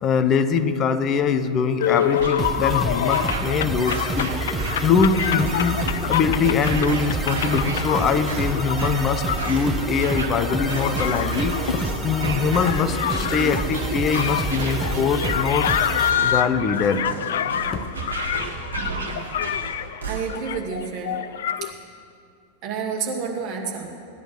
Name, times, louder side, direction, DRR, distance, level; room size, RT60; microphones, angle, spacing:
voice 1, 0.0-5.8 6.1-15.7 16.2-17.0 17.7-17.8, left 5 dB, 30° left, 10 dB, 0.9 m, -23 dB
sound 1, 1.8-21.7, left 10 dB, 60° left, 0.5 m, -27 dB
sound 2, 2.2-20.6, right 4 dB, 70° right, 1.8 m, -33 dB
sound 3, 2.4-16.1, right 2 dB, 10° right, 1.1 m, -29 dB
voice 2, 20.1-21.2 21.6-21.7 22.6-23.9, right 6 dB, 40° right, 0 dB, 2.5 m, -29 dB
17.5 x 10.5 x 6.0 m, 2.4 s
figure-of-eight pair, 90°, 0 cm